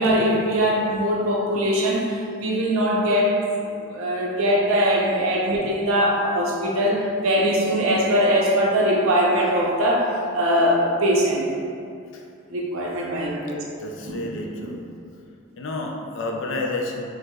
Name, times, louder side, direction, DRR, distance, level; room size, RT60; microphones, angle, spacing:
voice 1, 0.0-2.1 2.4-3.4 3.9-11.4 12.5-13.6 14.0-14.2 14.6-14.7, equal, 80° right, -3 dB, 0.6 m, -21 dB
voice 2, 13.8-14.8 15.6-17.0, left 2 dB, 60° left, 1 dB, 0.4 m, -30 dB
4.5 x 2.0 x 2.3 m, 2.5 s
head